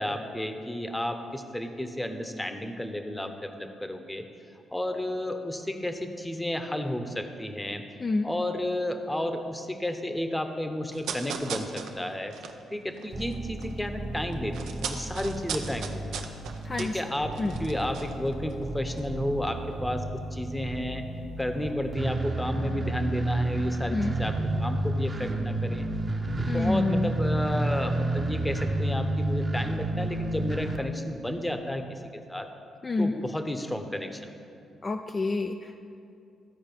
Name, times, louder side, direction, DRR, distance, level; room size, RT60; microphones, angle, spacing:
voice 1, 0.0-4.2 4.7-7.8 8.2-12.3 12.7-16.2 16.8-17.3 17.6-21.0 21.4-25.9 26.4-32.0 32.3-32.5 33.0-34.3, left 1 dB, 10° left, 6 dB, 0.8 m, -32 dB
voice 2, 8.0-8.3 16.6-17.1 17.4-17.6 23.9-24.1 26.5-27.1 32.8-33.2 34.8-35.8, left 3 dB, 35° left, 5 dB, 0.4 m, -28 dB
sound 1, 10.9-13.8 14.0-18.7 18.9-19.1, right 7 dB, 80° right, 0.5 m, -38 dB
sound 2, 13.1-30.8, right 1 dB, 35° right, 0.9 m, -31 dB
13.5 x 4.6 x 4.5 m, 2.5 s
supercardioid pair, 60°, 0 cm